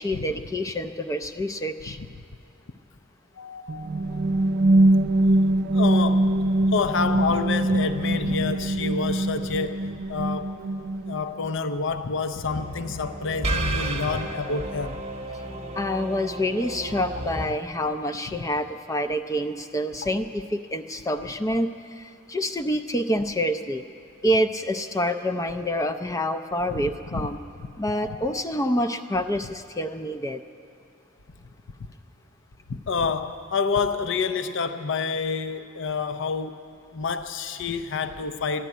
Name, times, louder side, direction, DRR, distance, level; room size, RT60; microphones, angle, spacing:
voice 1, 0.0-2.0 15.8-23.8 24.2-27.4 27.8-30.4, equal, 15° left, 8 dB, 0.4 m, -27 dB
voice 2, 3.4-4.4 5.7-6.3 6.7-10.5 11.1-15.0 26.7-27.3 27.6-27.7 27.9-28.5 32.7-36.6 36.9-38.7, left 4 dB, 65° left, 10 dB, 0.6 m, -28 dB
sound 1, 3.7-11.5, right 1 dB, 55° right, 0.5 m, -23 dB
sound 2, 12.5-17.5, right 2 dB, 30° right, 1.0 m, -32 dB
12.0 x 11.0 x 9.3 m, 2.5 s
head